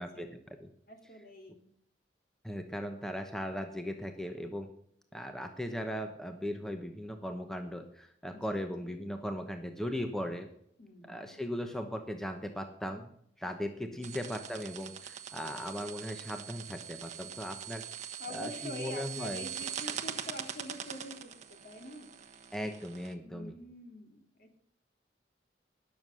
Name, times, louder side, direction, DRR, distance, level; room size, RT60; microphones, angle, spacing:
voice 1, 0.0-0.4 0.9-1.7 8.3-9.0 10.8-11.5 13.7-14.3 18.2-22.1 23.2-24.6, left 1 dB, 50° left, 4 dB, 2.6 m, -47 dB
voice 2, 2.4-4.7 5.1-10.5 11.1-17.8 18.3-19.5 22.5-23.6, equal, 5° left, 6 dB, 0.9 m, -38 dB
sound 1, 14.0-23.1, right 8 dB, 40° right, 1.1 m, -42 dB
18.5 x 7.1 x 6.3 m, 0.70 s
head